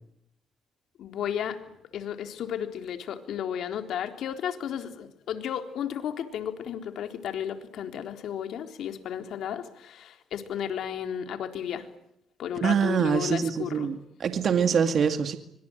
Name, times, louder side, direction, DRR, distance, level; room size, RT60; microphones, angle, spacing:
voice 1, 1.0-1.6 1.9-11.9 12.4-13.9, left 9 dB, 75° left, 6 dB, 3.8 m, -33 dB
voice 2, 12.6-15.4, right 7 dB, 55° right, 8 dB, 2.1 m, -24 dB
25.5 x 25.0 x 9.2 m, 0.75 s
cardioid pair, 90°, 0 cm